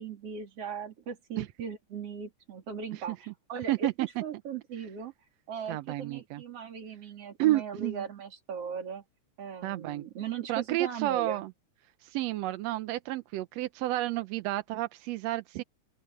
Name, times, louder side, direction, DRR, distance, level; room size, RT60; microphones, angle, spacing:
voice 1, 0.0-5.1 5.5-9.0 9.4-11.4, right 7 dB, 50° right, 3.7 m, -38 dB
voice 2, 3.7-4.1 5.7-6.4 7.4-8.1 9.6-10.0 10.5-11.5 12.0-15.6, right 16 dB, 75° right, 1.7 m, -30 dB
open air
omnidirectional pair, 3.5 m